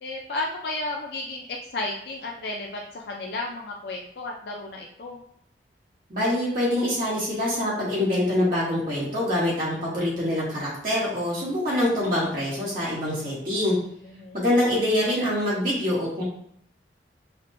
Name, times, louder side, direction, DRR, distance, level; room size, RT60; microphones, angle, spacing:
voice 1, 0.0-5.2 14.2-14.4, left 2 dB, 65° left, 0 dB, 0.4 m, -33 dB
voice 2, 6.1-13.8 14.3-16.2, left 1 dB, 50° right, -7 dB, 1.1 m, -25 dB
5.7 x 2.1 x 2.6 m, 0.67 s
head